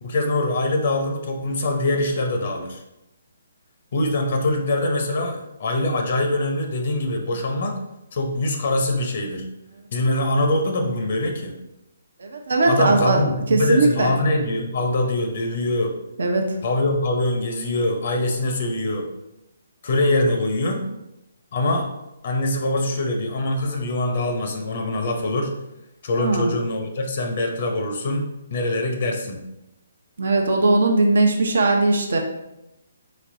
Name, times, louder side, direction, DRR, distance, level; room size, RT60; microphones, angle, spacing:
voice 1, 0.0-2.8 3.9-7.8 8.1-9.5 9.9-11.5 12.7-15.9 16.6-19.1 19.8-20.8 21.5-21.9 22.2-25.5 26.0-29.4, left 2 dB, 50° left, 3 dB, 0.7 m, -23 dB
voice 2, 12.2-13.2 13.5-14.1 16.2-16.5 26.2-26.5 30.2-32.2, right 2 dB, 65° right, 3 dB, 0.8 m, -19 dB
4.3 x 4.0 x 2.6 m, 0.89 s
figure-of-eight pair, 135°, 0 cm